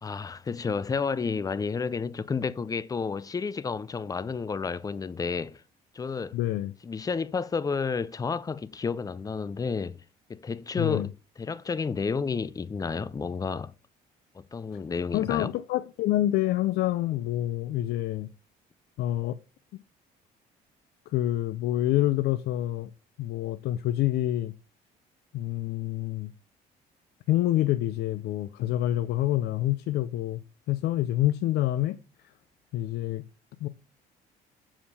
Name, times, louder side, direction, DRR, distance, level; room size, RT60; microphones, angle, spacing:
voice 1, 0.0-5.6 5.9-6.4 6.8-10.0 10.3-13.7 14.3-15.5, left 5 dB, 20° left, 0.5 m, -31 dB
voice 2, 6.3-6.7 10.8-11.1 15.1-18.3 19.0-19.4 19.7-19.8 21.1-22.9 23.2-24.5 25.3-26.3 27.3-30.4 30.7-32.0 32.7-33.2 33.6-33.7, left 14 dB, 75° left, 0.5 m, -27 dB
7.1 x 5.0 x 5.6 m
cardioid pair, 110°, 17 cm